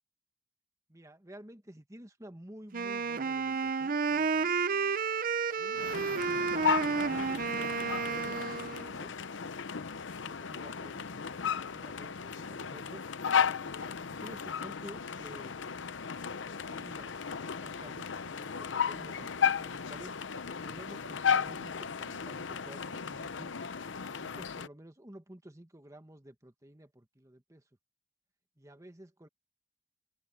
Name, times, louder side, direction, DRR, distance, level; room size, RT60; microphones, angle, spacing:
voice 1, 0.9-4.5 5.6-9.1 10.1-13.0 13.6-15.5 16.3-20.2 20.4-23.5 23.9-27.6 28.6-29.3, right 1 dB, 15° right, 1.6 m, -52 dB
Wind instrument woodwind instrument, 2.7-8.9, right 5 dB, 50° right, 0.6 m, -31 dB
sound 1, 5.8-24.7, left 7 dB, 85° left, 0.7 m, -34 dB
sound 2, 9.4-10.6 11.1-11.4 11.8-12.9 13.3-13.6 13.9-14.3 14.7-14.9 15.3-15.6 16.0-16.1 16.4-16.8 17.1-17.3 17.8-18.0 18.3-18.7 19.1-19.7 20.3-20.5 20.8-21.2 21.5-21.9, equal, 60° left, 2.2 m, -59 dB
head